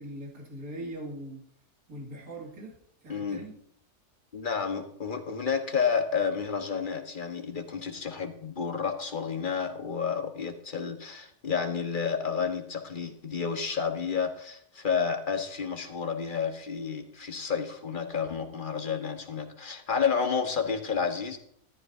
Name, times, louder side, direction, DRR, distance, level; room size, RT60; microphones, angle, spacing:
voice 1, 0.0-1.4 1.9-3.5, right 1 dB, 65° right, 0 dB, 3.0 m, -41 dB
voice 2, 3.1-3.4 4.3-21.4, left 6 dB, 35° left, 5 dB, 1.4 m, -30 dB
14.0 x 13.0 x 2.7 m, 0.67 s
omnidirectional pair, 1.6 m